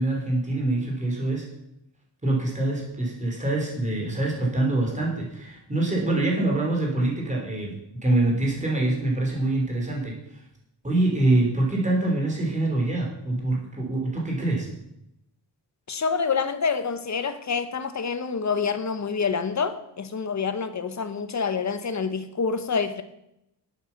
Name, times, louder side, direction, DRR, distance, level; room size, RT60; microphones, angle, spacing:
voice 1, 0.0-1.5 2.2-7.7 8.0-10.1 10.8-14.7, right 2 dB, 15° right, -2 dB, 3.5 m, -25 dB
voice 2, 15.9-23.0, left 5 dB, 40° left, 10 dB, 0.9 m, -27 dB
11.5 x 8.7 x 5.8 m, 0.82 s
wide cardioid pair, 170°, 42 cm